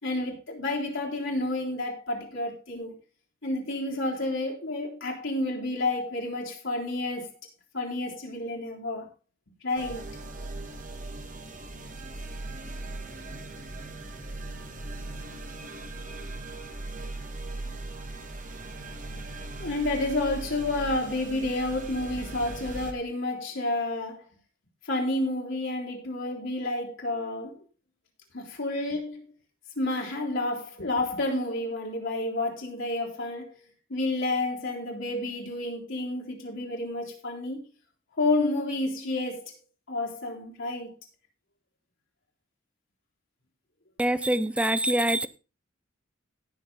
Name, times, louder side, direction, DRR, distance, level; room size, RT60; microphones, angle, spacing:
voice 1, 0.0-2.9 3.4-7.3 7.7-9.1 9.6-10.1 19.6-24.3 24.8-27.6 28.3-29.2 29.8-33.6 33.9-37.6 38.2-39.4 39.9-40.9, left 2 dB, 65° left, 3.6 m, -30 dB
sound 1, 9.8-22.9, right 2 dB, 40° right, 1.6 m, -39 dB
voice 2, 44.0-45.3, right 1 dB, 5° right, 0.5 m, -24 dB
17.5 x 6.4 x 3.9 m
head